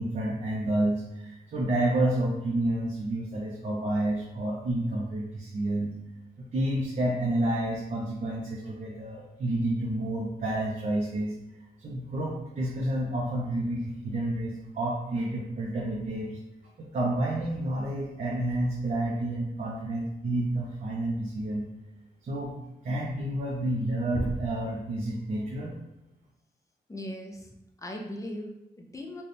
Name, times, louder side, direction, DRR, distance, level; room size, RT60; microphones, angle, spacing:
voice 1, 0.0-5.9 6.4-11.3 11.8-16.4 16.8-21.7 22.2-22.5 22.8-25.8, right 1 dB, 50° right, -4 dB, 0.6 m, -29 dB
voice 2, 26.9-27.5 27.8-29.2, left 1 dB, 20° left, 1 dB, 0.4 m, -39 dB
4.1 x 2.2 x 3.3 m, 0.90 s
wide cardioid pair, 145°, 17 cm